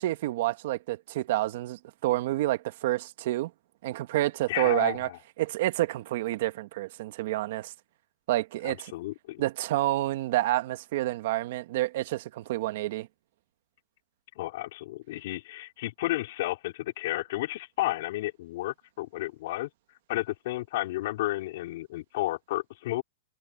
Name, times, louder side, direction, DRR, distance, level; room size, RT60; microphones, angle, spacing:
voice 1, 0.0-3.5 3.8-5.1 5.4-7.7 8.3-8.9 9.4-13.1, right 16 dB, 50° right, 1.4 m, -29 dB
voice 2, 4.5-5.2 8.6-9.4 14.3-19.7 20.1-23.0, left 17 dB, 50° left, 4.8 m, -32 dB
hypercardioid pair, 155°, 0 cm